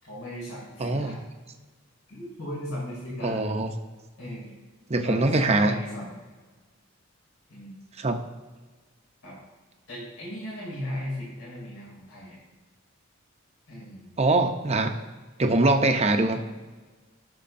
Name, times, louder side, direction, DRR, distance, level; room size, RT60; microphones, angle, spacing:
voice 1, 0.0-1.2 2.1-3.5 4.2-4.5 5.0-6.2 7.5-7.8 9.2-9.4 9.9-12.4 13.7-14.2, equal, 75° left, -5 dB, 2.9 m, -37 dB
voice 2, 0.8-1.1 3.2-3.7 4.9-5.7 8.0-8.2 14.2-14.9 15.4-16.4, right 2 dB, 30° right, 5 dB, 0.7 m, -23 dB
15.5 x 6.3 x 2.6 m, 1.3 s
head